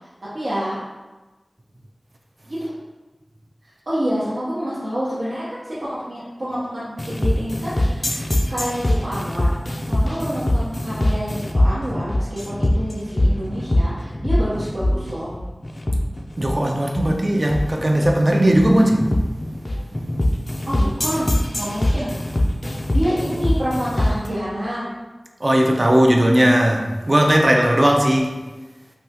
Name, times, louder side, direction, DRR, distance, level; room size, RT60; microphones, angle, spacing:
voice 1, 0.3-0.8 2.4-2.7 3.9-9.5 9.8-15.3 20.7-22.2 22.6-25.0, equal, 80° right, -12 dB, 0.8 m, -28 dB
sound 1, 7.0-24.3, left 1 dB, 45° left, 0.3 m, -22 dB
voice 2, 16.4-19.0 25.4-28.3, right 1 dB, 40° right, 2 dB, 0.4 m, -17 dB
3.4 x 2.2 x 2.8 m, 1.2 s
wide cardioid pair, 50°, 0 cm